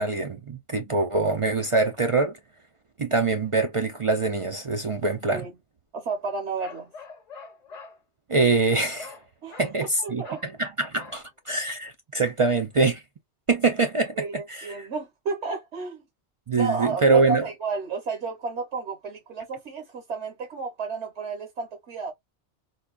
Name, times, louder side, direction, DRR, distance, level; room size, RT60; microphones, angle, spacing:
voice 1, 0.0-2.4 3.0-5.5 8.3-9.1 9.6-13.0 13.5-14.9 16.5-17.4, right 3 dB, 50° right, 0.4 m, -24 dB
voice 2, 5.9-6.9 9.4-9.6 10.0-10.4 14.2-16.0 16.6-22.1, right 4 dB, 75° right, 1.3 m, -32 dB
Bark, 6.6-8.0 9.0-9.2 9.5-9.8 10.2-10.5 11.0-11.2, left 4 dB, 40° left, 0.8 m, -44 dB
4.0 x 2.2 x 2.4 m
omnidirectional pair, 1.1 m